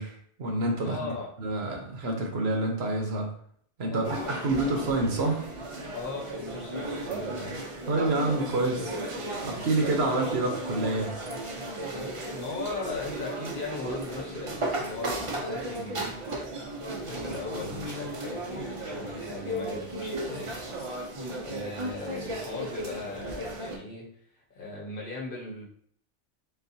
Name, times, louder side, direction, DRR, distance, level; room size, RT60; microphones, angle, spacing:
voice 1, 0.0-3.3 3.8-5.4 7.9-8.9 9.4-11.2, right 2 dB, 60° right, 2 dB, 1.0 m, -28 dB
voice 2, 0.8-1.3 3.9-4.7 5.9-7.6 12.3-16.2 16.8-24.1 24.4-25.7, left 3 dB, 50° left, -2 dB, 1.0 m, -38 dB
sound 1, 4.0-23.8, right 1 dB, 35° right, 0.5 m, -35 dB
3.9 x 3.8 x 2.7 m, 0.62 s
omnidirectional pair, 1.2 m